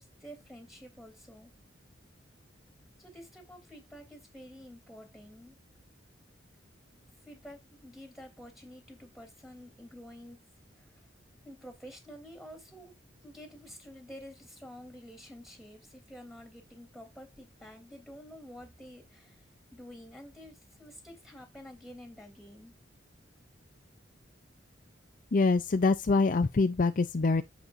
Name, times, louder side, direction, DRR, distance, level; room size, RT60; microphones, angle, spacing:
voice 1, 0.0-1.5 3.0-5.6 7.0-10.9 11.4-19.4 19.7-22.7, equal, ahead, 3.3 m, -49 dB
voice 2, 25.3-27.4, left 3 dB, 45° left, 0.5 m, -25 dB
14.0 x 5.2 x 2.6 m
head